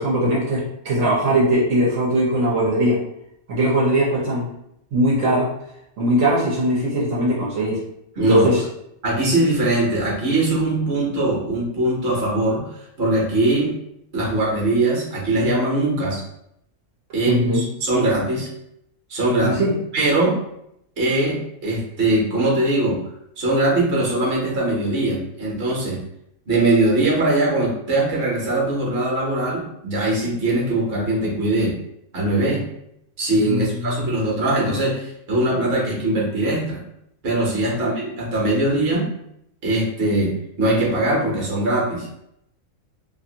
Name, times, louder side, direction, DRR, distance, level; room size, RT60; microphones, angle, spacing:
voice 1, 0.0-3.0 3.5-4.5 4.9-5.5 6.0-7.8 8.3-8.6 17.3-17.6 19.4-19.7 33.4-34.1, right 1 dB, 75° right, -5 dB, 1.2 m, -20 dB
voice 2, 8.2-8.5 9.0-12.7 13.0-13.7 14.1-16.2 17.1-18.5 19.1-19.6 19.9-20.3 21.0-23.0 23.4-26.0 26.5-31.7 32.1-32.6 33.2-36.8 37.2-39.1 39.6-42.1, right 2 dB, 50° right, -3 dB, 1.1 m, -21 dB
2.8 x 2.5 x 2.7 m, 0.78 s
omnidirectional pair, 1.4 m